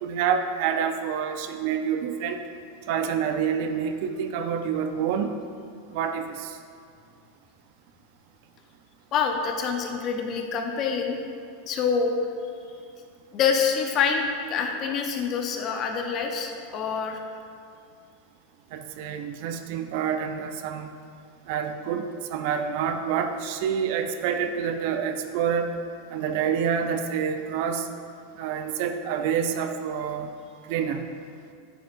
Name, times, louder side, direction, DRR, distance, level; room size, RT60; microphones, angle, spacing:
voice 1, 0.0-2.4 2.9-5.3 5.9-6.6 18.7-20.9 21.5-25.7 26.1-27.9 28.4-30.3 30.7-31.1, right 7 dB, 60° right, 7 dB, 0.7 m, -27 dB
voice 2, 9.1-11.2 11.7-12.1 13.3-17.2, left 6 dB, 40° left, 3 dB, 1.1 m, -26 dB
10.5 x 9.0 x 2.6 m, 2.3 s
hypercardioid pair, 95°, 0 cm